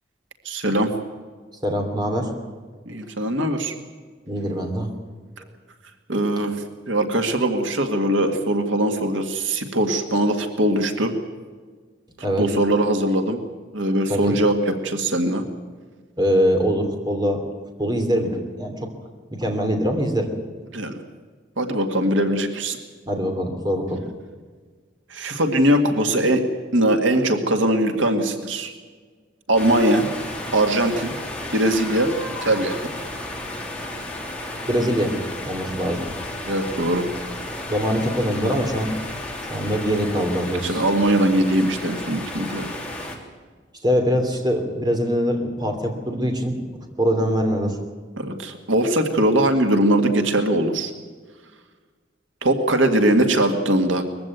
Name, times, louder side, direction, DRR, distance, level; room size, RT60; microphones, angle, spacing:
voice 1, 0.4-0.9 2.9-3.8 6.1-11.1 12.4-13.4 13.7-15.5 20.7-21.0 21.6-22.8 25.1-26.4 26.7-28.7 29.5-30.1 30.5-31.2 31.5-32.1 32.4-32.8 36.5-37.0 40.6-42.7 48.2-50.9 52.4-54.0, right 1 dB, 85° right, 6 dB, 2.1 m, -21 dB
voice 2, 1.6-2.3 4.3-4.9 12.2-12.5 14.1-14.3 16.2-17.4 17.8-18.9 19.3-20.3 23.1-24.0 34.7-35.1 35.5-36.0 37.7-39.0 39.5-40.8 43.8-46.6 47.0-47.8, equal, 20° right, 3 dB, 2.9 m, -23 dB
sound 1, 29.6-43.2, left 1 dB, 5° left, 2.9 m, -33 dB
21.0 x 15.0 x 9.3 m, 1.5 s
head